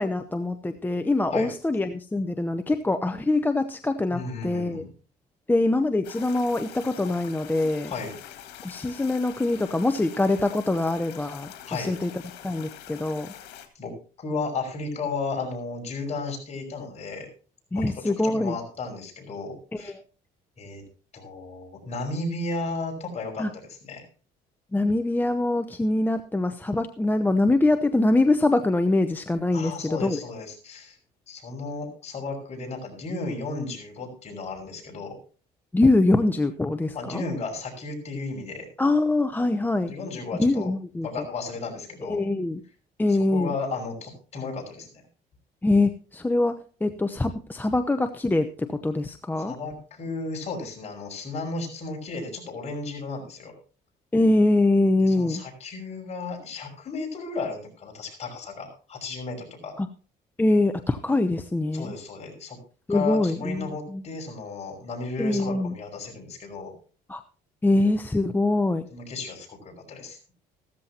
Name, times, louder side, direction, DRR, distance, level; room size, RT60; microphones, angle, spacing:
voice 1, 0.0-4.8 5.5-7.9 8.6-12.1 12.4-13.3 17.7-18.6 19.7-20.0 23.4-23.5 24.7-30.2 35.7-37.2 38.8-39.9 40.4-41.1 42.1-42.6 43.0-43.5 45.6-49.6 54.1-55.4 59.8-59.9 60.4-61.9 62.9-64.0 65.2-65.7 67.1-67.2 67.6-68.9, left 2 dB, 10° left, 8 dB, 0.7 m, -24 dB
voice 2, 4.1-4.9 7.9-8.1 11.6-11.9 13.7-17.3 17.7-19.9 20.6-20.8 21.1-24.1 29.5-31.0 31.3-35.2 36.9-38.7 39.8-40.7 41.0-42.2 43.1-45.0 49.4-53.5 55.0-59.7 61.7-62.6 62.9-66.7 68.9-70.2, left 3 dB, 40° left, 1 dB, 5.7 m, -34 dB
sound 1, 6.0-13.7, left 11 dB, 85° left, 2.1 m, -44 dB
15.0 x 13.5 x 2.9 m, 0.37 s
cardioid pair, 110°, 17 cm